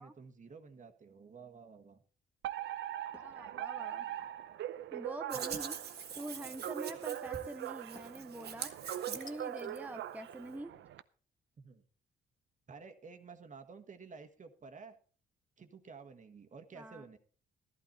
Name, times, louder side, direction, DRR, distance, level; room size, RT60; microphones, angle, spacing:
voice 1, 0.0-2.0 11.6-11.8 12.7-15.0 15.6-17.2, right 5 dB, 40° right, 6 dB, 1.6 m, -52 dB
Alarm, 2.4-11.0, right 12 dB, 70° right, 0.7 m, -41 dB
sound 1, 3.1-3.4 3.9-4.4 6.1-6.6 8.0-8.3 9.3-9.7, left 3 dB, 20° left, 1.3 m, -58 dB
voice 2, 3.1-4.1 4.9-5.8 6.2-8.7 9.1-10.7 16.7-17.1, right 1 dB, 10° right, 7 dB, 0.8 m, -45 dB
Hands, 5.3-9.8, right 7 dB, 55° right, 1.7 m, -44 dB
13.5 x 12.0 x 4.2 m, 0.42 s
cardioid pair, 90°, 20 cm